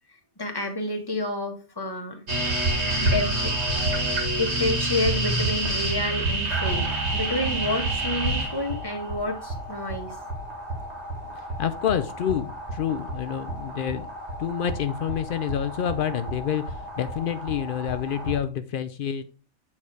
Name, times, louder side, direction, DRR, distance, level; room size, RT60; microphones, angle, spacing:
voice 1, 0.4-2.2 3.0-3.5 4.4-10.2, left 2 dB, 15° left, 4 dB, 1.3 m, -29 dB
sound 1, 2.3-18.4, right 2 dB, 50° right, 2.2 m, -29 dB
voice 2, 11.3-14.1 14.4-19.3, left 9 dB, 75° left, 10 dB, 0.5 m, -28 dB
8.7 x 4.2 x 4.8 m, 0.35 s
omnidirectional pair, 1.5 m